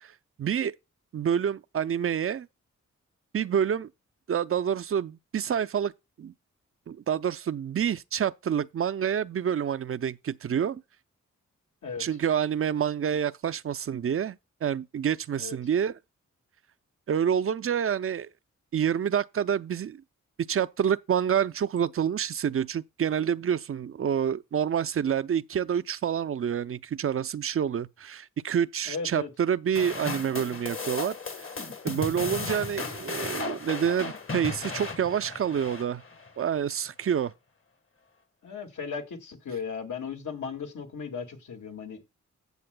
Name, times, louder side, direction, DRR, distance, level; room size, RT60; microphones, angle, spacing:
voice 1, 0.4-0.7 1.1-2.5 3.3-3.9 4.3-5.9 6.2-6.3 6.9-10.8 12.0-16.0 17.1-18.3 18.7-20.0 20.5-31.2 31.8-36.0 36.4-37.3, right 8 dB, 45° right, 0.5 m, -28 dB
voice 2, 28.9-29.3 38.4-42.0, left 6 dB, 75° left, 2.1 m, -36 dB
sound 1, 29.7-36.3, left 4 dB, 40° left, 1.4 m, -35 dB
16.5 x 6.8 x 2.2 m
cardioid pair, 50°, 31 cm